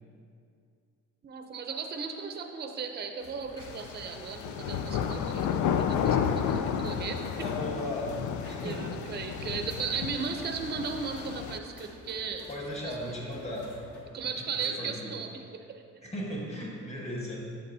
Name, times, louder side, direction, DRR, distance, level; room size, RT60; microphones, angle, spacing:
voice 1, 1.2-7.2 8.4-12.5 12.8-13.1 14.1-15.8, right 5 dB, 35° right, 5 dB, 0.6 m, -36 dB
sound 1, 3.2-14.0, left 1 dB, 50° left, 1.3 m, -51 dB
sound 2, 3.6-11.6, left 8 dB, 75° left, 0.5 m, -32 dB
voice 2, 7.4-8.2 8.5-8.9 12.5-13.7 14.3-15.1 16.0-17.4, left 1 dB, 20° left, -2 dB, 1.5 m, -36 dB
8.4 x 6.4 x 2.7 m, 2.4 s
cardioid pair, 90°, 30 cm